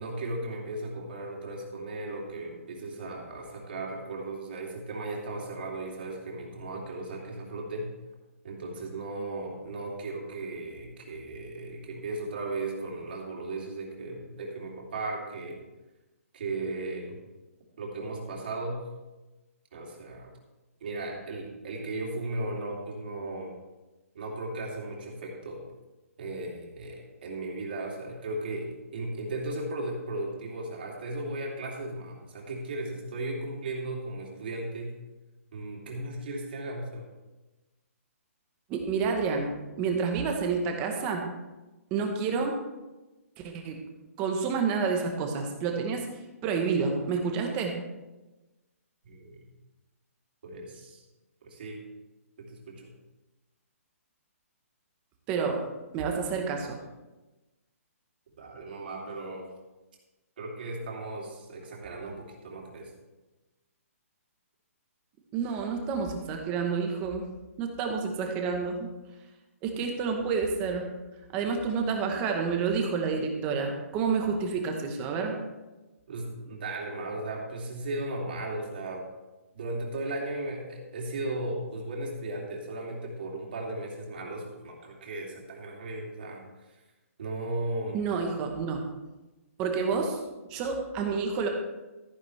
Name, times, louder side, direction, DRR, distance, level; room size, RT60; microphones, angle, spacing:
voice 1, 0.0-7.9 8.4-15.6 16.3-17.2 17.8-18.8 19.7-20.3 20.8-23.6 24.1-25.6 26.2-35.0 35.5-37.1 49.0-49.5 50.4-51.0 51.4-51.8 52.4-52.9 58.4-59.5 60.4-62.9 76.1-79.1 79.5-86.8 87.2-88.0, right 2 dB, 40° right, -1 dB, 2.7 m, -36 dB
voice 2, 38.7-39.5 39.8-41.3 41.9-42.6 43.4-43.8 44.2-46.1 46.4-47.8 55.3-55.6 55.9-56.8 65.3-67.2 67.6-68.9 69.6-70.9 71.3-75.4 87.9-88.8 89.6-90.2 90.5-91.5, right 5 dB, 15° right, 3 dB, 0.9 m, -29 dB
13.5 x 10.0 x 3.3 m, 1.1 s
hypercardioid pair, 180°, 8 cm